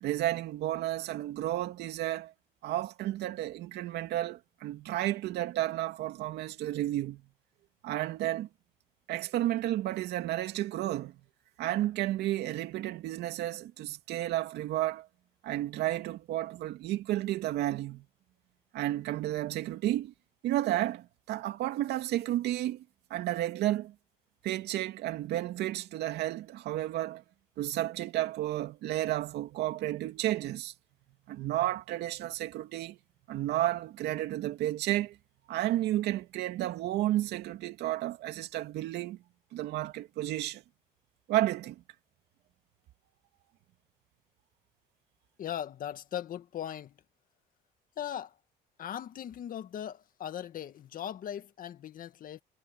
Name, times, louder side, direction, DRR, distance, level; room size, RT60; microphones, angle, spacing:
voice 1, 0.0-2.3 2.6-7.2 7.8-8.5 9.1-11.1 11.6-15.1 15.4-18.0 18.7-20.1 20.4-22.8 23.1-23.9 24.4-27.2 27.6-30.7 31.3-33.0 33.3-35.2 35.5-39.2 39.5-40.6 41.3-41.8, right 14 dB, 80° right, 2.6 m, -32 dB
voice 2, 45.4-46.9 48.0-48.4 48.8-52.4, left 10 dB, 55° left, 1.9 m, -39 dB
cardioid pair, 110°, 17 cm